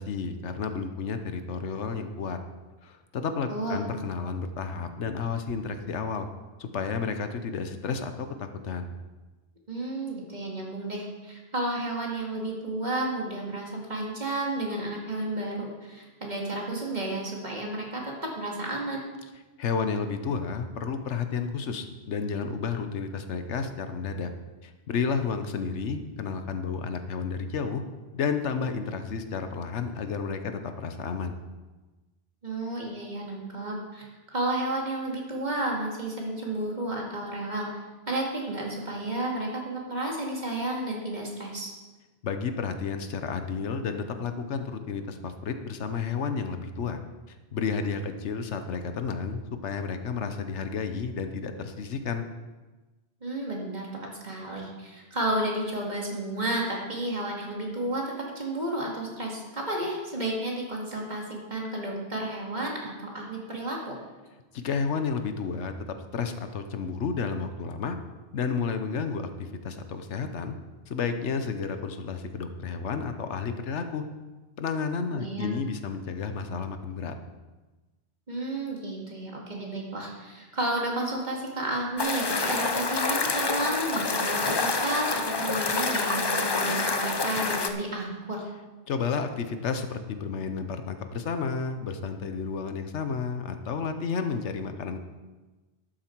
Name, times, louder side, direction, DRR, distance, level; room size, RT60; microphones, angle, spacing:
voice 1, 0.0-2.4 2.8-6.3 6.6-8.9 19.6-24.3 24.6-27.8 28.1-31.3 42.2-47.0 47.3-52.3 64.5-65.7 66.1-68.0 68.3-70.5 70.9-74.0 74.6-77.2 88.9-95.0, left 5 dB, 90° left, 8 dB, 1.2 m, -31 dB
voice 2, 3.5-3.9 9.7-19.0 32.4-37.7 38.1-41.7 53.2-53.9 54.2-64.0 75.1-75.6 78.3-88.4, right 1 dB, 40° right, -2 dB, 2.4 m, -32 dB
sound 1, 82.0-87.7, left 3 dB, 30° left, 0.5 m, -27 dB
12.0 x 9.0 x 4.6 m, 1.2 s
omnidirectional pair, 1.2 m